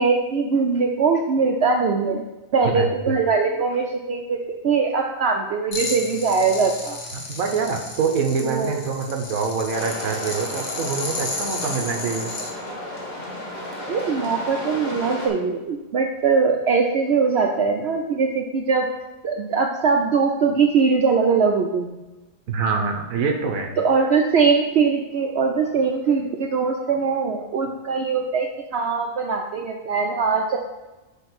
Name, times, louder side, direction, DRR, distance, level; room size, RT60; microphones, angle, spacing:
voice 1, 0.0-2.2 2.5-7.0 8.4-8.7 13.9-18.9 19.2-22.0 23.8-30.6, right 5 dB, 60° right, 2 dB, 0.8 m, -21 dB
voice 2, 2.7-3.1 7.1-12.3 22.5-23.8, right 5 dB, 90° right, 3 dB, 1.2 m, -25 dB
sound 1, 5.7-12.5, left 3 dB, 60° left, 1.4 m, -33 dB
sound 2, 9.7-15.3, left 1 dB, 35° left, 1.7 m, -33 dB
7.2 x 3.3 x 5.9 m, 1.1 s
omnidirectional pair, 1.4 m